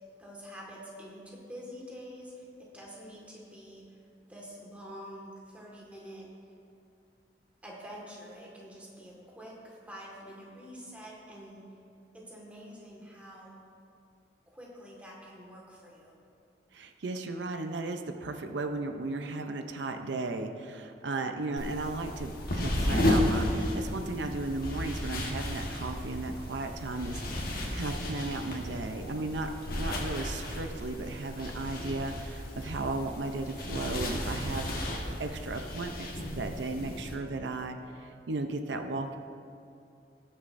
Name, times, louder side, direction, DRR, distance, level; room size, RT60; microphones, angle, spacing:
voice 1, 0.2-4.0 4.3-6.3 7.6-11.8 12.1-13.6 14.5-16.1, equal, 10° right, -4 dB, 1.7 m, -47 dB
voice 2, 16.7-29.5 29.8-39.2, right 2 dB, 85° right, 6 dB, 0.6 m, -35 dB
sound 1, 21.6-37.2, left 1 dB, 55° left, 1.3 m, -33 dB
19.5 x 6.5 x 2.6 m, 2.5 s
head